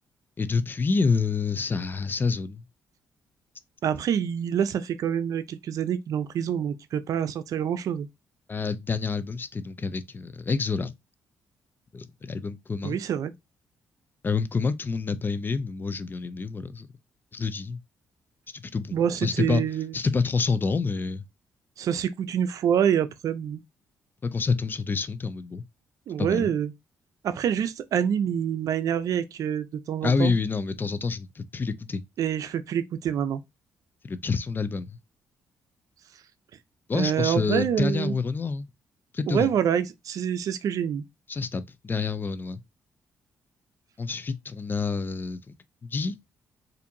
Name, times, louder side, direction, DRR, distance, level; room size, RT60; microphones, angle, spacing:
voice 1, 0.4-2.6 8.5-10.9 11.9-13.0 14.2-16.9 17.3-17.8 18.5-19.6 19.9-21.2 24.2-25.6 26.2-26.5 30.0-32.0 34.0-35.0 36.9-38.7 39.1-39.5 41.3-42.6 44.0-45.5 45.8-46.1, left 4 dB, 35° left, 0.5 m, -28 dB
voice 2, 3.8-8.1 12.8-13.3 18.9-19.9 21.8-23.6 26.1-26.7 27.2-30.3 32.2-33.4 36.9-38.1 39.3-41.0, right 8 dB, 65° right, 0.5 m, -26 dB
4.3 x 2.6 x 2.6 m
cardioid pair, 80°, 6 cm